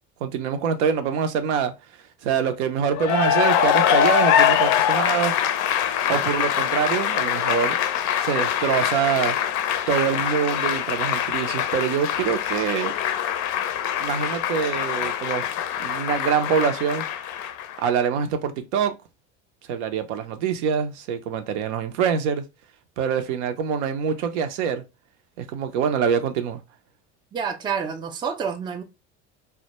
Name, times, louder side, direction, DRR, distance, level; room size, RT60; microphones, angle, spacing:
voice 1, 0.2-1.7 2.2-5.3 6.1-7.8 8.2-9.4 9.9-12.9 14.0-15.5 15.8-17.1 17.8-19.0 19.7-22.4 23.0-24.8 25.4-26.6, right 7 dB, 85° right, 0.5 m, -25 dB
Cheering / Applause, 2.9-17.9, left 9 dB, 60° left, 0.4 m, -23 dB
voice 2, 27.3-28.8, right 6 dB, 15° right, 0.3 m, -28 dB
2.1 x 2.1 x 2.8 m
supercardioid pair, 90°, 34 cm